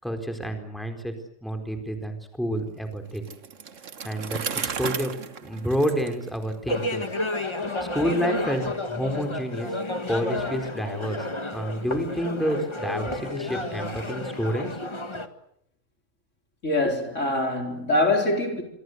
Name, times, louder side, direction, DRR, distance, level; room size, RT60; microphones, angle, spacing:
voice 1, 0.0-1.1 1.4-3.2 4.0-5.1 5.4-7.1 7.8-9.7 10.1-14.9, equal, ahead, 4.1 m, -29 dB
Bicycle, 3.1-7.0, right 6 dB, 85° right, 1.6 m, -34 dB
sound 1, 6.7-15.3, left 2 dB, 25° left, 1.6 m, -31 dB
voice 2, 16.6-18.6, left 2 dB, 80° left, 4.7 m, -24 dB
26.5 x 24.0 x 8.1 m
omnidirectional pair, 1.3 m